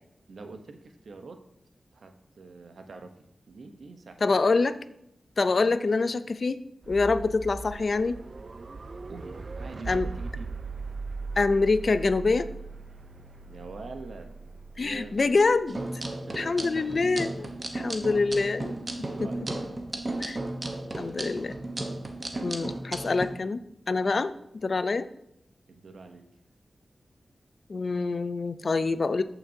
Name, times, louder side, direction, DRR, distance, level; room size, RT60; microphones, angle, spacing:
voice 1, 0.3-1.4 1.9-4.4 5.6-5.8 9.1-10.6 13.4-14.3 14.7-15.3 16.1-16.9 17.2-18.2 19.1-19.5 22.3-22.7 25.7-26.3, right 3 dB, 80° right, 6 dB, 0.8 m, -45 dB
voice 2, 4.2-4.8 5.4-6.6 6.9-8.2 9.9-10.1 11.4-12.5 14.8-15.8 16.4-18.7 19.2-19.3 20.2-20.4 21.0-21.6 22.4-23.6 23.9-24.3 24.6-25.1 27.7-29.2, left 3 dB, 55° left, 12 dB, 0.4 m, -25 dB
sound 1, 6.8-22.7, right 3 dB, 50° right, 0.4 m, -41 dB
sound 2, 15.7-23.3, right 2 dB, 35° right, 1.0 m, -34 dB
14.0 x 5.9 x 2.7 m, 0.77 s
wide cardioid pair, 90°, 0 cm